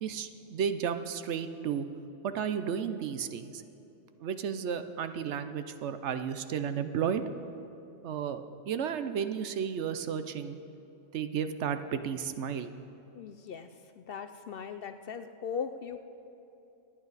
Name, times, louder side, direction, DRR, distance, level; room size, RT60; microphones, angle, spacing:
voice 1, 0.0-1.9 2.2-3.6 4.2-7.2 8.0-10.6 11.1-12.7, right 7 dB, 70° right, 10 dB, 0.9 m, -33 dB
voice 2, 13.1-13.7 14.0-16.0, left 6 dB, 60° left, 8 dB, 0.7 m, -39 dB
25.5 x 9.0 x 4.1 m, 2.9 s
omnidirectional pair, 1.3 m